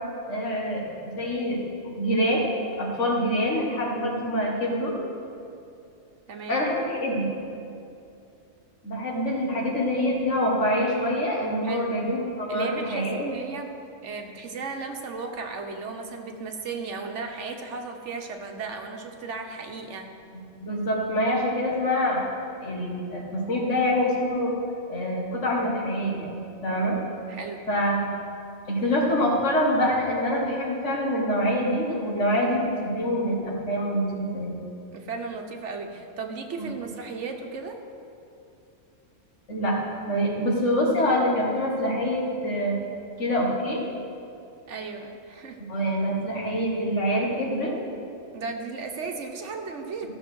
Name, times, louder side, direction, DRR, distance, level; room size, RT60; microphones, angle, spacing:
voice 1, 0.3-1.6 1.8-2.4 2.8-4.9 6.5-7.3 8.8-13.3 20.6-22.3 22.6-24.5 24.9-27.0 27.7-28.1 28.7-34.6 36.6-36.7 39.5-39.8 40.1-42.8 43.2-43.8 45.7-47.7, equal, 80° left, -2 dB, 2.2 m, -25 dB
voice 2, 6.3-6.6 11.6-12.0 12.5-13.7 14.0-20.1 27.3-27.6 34.9-37.8 44.7-45.6 48.3-50.1, right 4 dB, 75° right, 3 dB, 1.4 m, -35 dB
14.0 x 6.7 x 6.3 m, 2.6 s
omnidirectional pair, 1.2 m